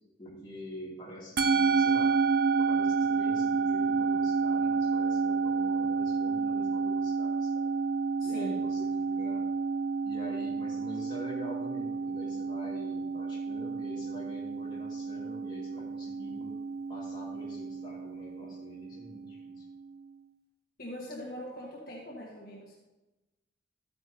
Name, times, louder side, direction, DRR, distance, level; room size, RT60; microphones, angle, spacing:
voice 1, 0.2-2.2 2.5-7.7 8.2-9.5 10.0-16.5 16.9-19.6, equal, 25° left, -5 dB, 2.8 m, -45 dB
Musical instrument, 1.4-19.9, right 5 dB, 55° right, 0.6 m, -30 dB
voice 2, 8.2-8.7 20.8-22.8, equal, 55° left, -4 dB, 1.6 m, -41 dB
13.0 x 9.6 x 2.8 m, 1.1 s
head